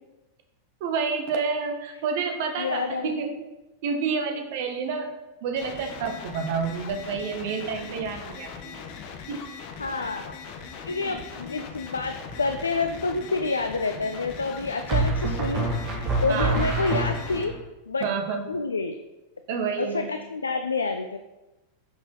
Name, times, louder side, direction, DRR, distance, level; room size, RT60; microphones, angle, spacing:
voice 1, 0.8-3.4 3.8-5.1 5.4-8.8 9.3-9.5 11.0-11.1 16.3-16.6 18.0-18.5 19.5-20.1, right 5 dB, 50° right, 5 dB, 1.4 m, -29 dB
voice 2, 2.6-3.1 9.8-10.3 10.9-15.7 16.2-17.6 17.9-18.1 18.5-19.0 19.8-21.2, left 4 dB, 75° left, 7 dB, 0.5 m, -28 dB
sound 1, 5.6-17.4, left 6 dB, 45° left, 1.1 m, -40 dB
sound 2, 12.2-12.8 14.9-17.6, right 3 dB, 30° right, 2.1 m, -26 dB
9.5 x 6.2 x 4.1 m, 1.0 s
figure-of-eight pair, 90°, 0 cm